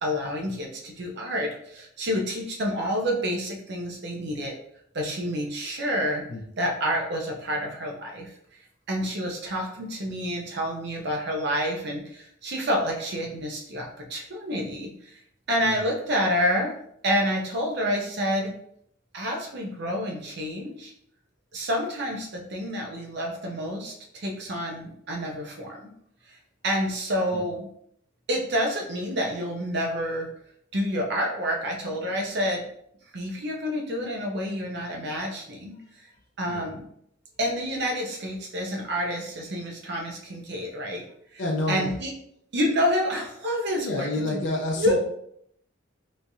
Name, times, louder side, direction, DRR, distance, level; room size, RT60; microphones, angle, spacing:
voice 1, 0.0-4.5 4.9-6.2 6.6-8.3 8.9-15.2 15.5-16.8 17.0-18.5 19.1-20.9 21.5-25.9 26.6-27.7 28.3-30.3 30.7-32.7 33.1-35.7 36.4-36.8 37.4-41.0 41.3-41.4 41.7-42.1 42.5-44.1 44.8-45.0, equal, 55° right, 0 dB, 0.7 m, -28 dB
voice 2, 41.4-41.9 43.8-45.0, left 2 dB, 60° left, -2 dB, 0.6 m, -29 dB
3.4 x 3.2 x 2.7 m, 0.71 s
head